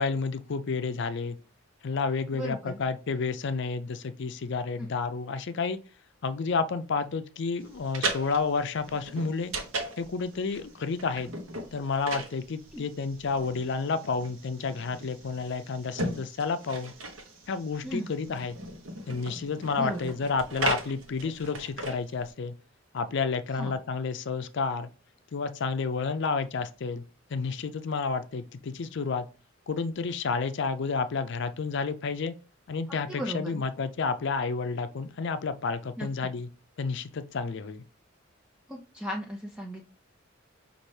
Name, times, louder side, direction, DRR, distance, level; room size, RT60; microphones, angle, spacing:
voice 1, 0.0-1.4 1.8-5.8 6.2-9.5 10.0-11.3 11.7-16.9 17.5-18.6 19.1-22.5 22.9-24.9 25.3-27.0 27.3-29.3 29.7-32.3 32.7-36.5 36.8-37.8, left 4 dB, 60° left, 0.5 m, -30 dB
voice 2, 2.3-2.8 4.8-4.9 12.7-12.8 17.8-18.1 19.8-20.1 23.5-23.7 33.1-33.6 36.0-36.1 38.7-39.9, equal, 5° right, 0.4 m, -36 dB
sound 1, 7.7-22.3, right 2 dB, 70° right, 1.0 m, -37 dB
5.4 x 2.6 x 3.2 m
head